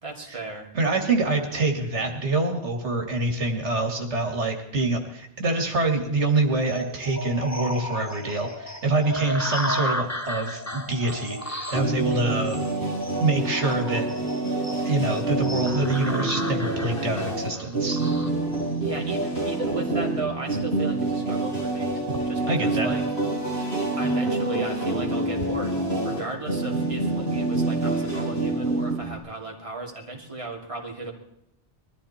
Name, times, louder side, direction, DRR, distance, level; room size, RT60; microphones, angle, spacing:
voice 1, 0.0-0.7 18.8-21.9 22.2-23.0 24.0-25.8 26.0-31.1, right 3 dB, 30° right, 0 dB, 2.8 m, -35 dB
voice 2, 0.7-12.6 13.2-14.1 14.9-18.0 22.5-22.9, right 2 dB, 85° right, 4 dB, 2.3 m, -25 dB
sound 1, 6.7-19.7, equal, 15° left, 1.3 m, -34 dB
sound 2, 11.7-29.2, right 2 dB, 65° left, 8.3 m, -27 dB
21.5 x 14.0 x 4.3 m, 0.81 s
omnidirectional pair, 1.2 m